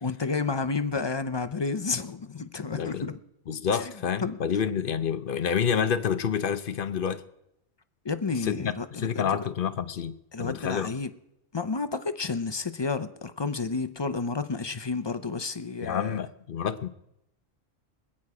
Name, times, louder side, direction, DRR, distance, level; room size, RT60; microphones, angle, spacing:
voice 1, 0.0-3.2 3.7-3.9 4.2-4.4 8.0-9.4 10.3-11.1 11.5-16.2, left 4 dB, 35° left, 0.5 m, -31 dB
voice 2, 2.7-3.1 3.5-7.2 8.3-10.9 15.8-16.9, left 7 dB, 50° left, 0.8 m, -28 dB
25.0 x 8.6 x 4.9 m
omnidirectional pair, 1.3 m